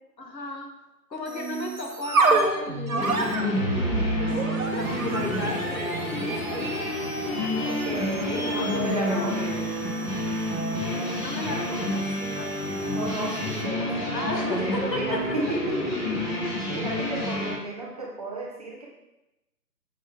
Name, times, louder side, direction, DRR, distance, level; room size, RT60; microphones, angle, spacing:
voice 1, 0.2-0.7 1.1-3.7 4.2-6.9 8.3-9.5 11.2-12.9 14.1-15.4 16.4-16.5, left 1 dB, 80° left, 2 dB, 1.9 m, -35 dB
sound 1, 1.3-13.7, right 3 dB, 55° right, 1.3 m, -30 dB
sound 2, 3.0-17.5, left 1 dB, 20° left, 2.6 m, -29 dB
voice 2, 7.6-9.7 12.9-18.9, right 2 dB, 25° right, -3 dB, 1.0 m, -33 dB
7.5 x 7.1 x 3.6 m, 0.95 s
figure-of-eight pair, 155°, 50 cm